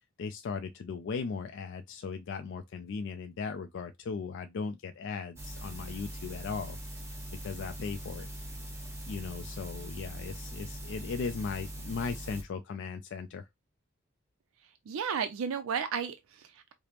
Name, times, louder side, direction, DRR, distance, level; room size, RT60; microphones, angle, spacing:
voice 1, 0.2-6.8 7.4-8.3 9.1-13.5, left 5 dB, 60° left, 0.3 m, -37 dB
sound 1, 5.4-12.4, right 1 dB, 15° right, 0.9 m, -42 dB
voice 2, 14.9-16.7, right 7 dB, 75° right, 0.4 m, -33 dB
4.9 x 2.0 x 2.8 m
head